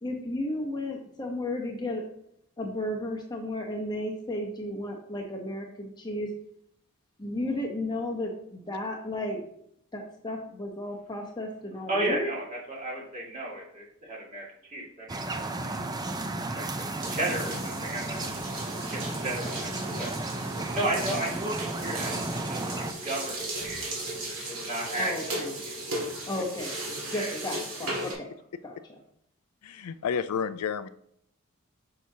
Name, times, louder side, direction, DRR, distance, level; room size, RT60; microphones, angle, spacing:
voice 1, 0.0-2.0 2.6-6.3 7.2-9.4 9.9-12.3 25.0-25.5 26.3-28.3 28.6-29.0, left 1 dB, 20° left, 1 dB, 0.8 m, -34 dB
voice 2, 11.9-15.8 16.6-18.2 18.9-19.7 20.0-20.1 20.7-23.9 24.4-25.8 27.1-27.3, right 1 dB, 35° right, -3 dB, 2.0 m, -34 dB
sound 1, 15.1-22.9, right 2 dB, 15° right, 0.4 m, -34 dB
sound 2, 17.0-28.1, right 2 dB, 65° right, 1.9 m, -36 dB
voice 3, 29.6-30.9, left 7 dB, 85° left, 13 dB, 0.4 m, -30 dB
6.2 x 5.7 x 2.8 m, 0.72 s
head